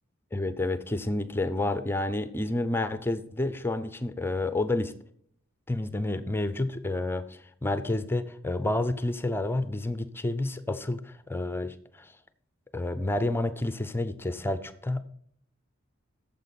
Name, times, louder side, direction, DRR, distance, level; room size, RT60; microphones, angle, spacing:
voice 1, 0.3-4.9 5.7-12.1 12.7-15.0, left 2 dB, 10° left, 12 dB, 0.5 m, -29 dB
9.7 x 7.2 x 4.0 m, 0.63 s
head